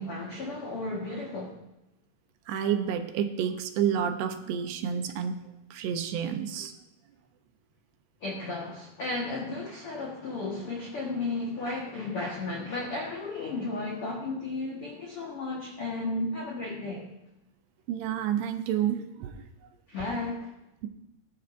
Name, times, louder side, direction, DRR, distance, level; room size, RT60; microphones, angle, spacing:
voice 1, 0.0-1.6 8.2-17.1 19.9-20.5, left 2 dB, 70° left, -2 dB, 1.3 m, -34 dB
voice 2, 2.5-5.4 5.7-6.7 17.9-19.5, right 9 dB, 80° right, 7 dB, 2.8 m, -29 dB
19.0 x 10.5 x 2.6 m, 0.88 s
omnidirectional pair, 4.8 m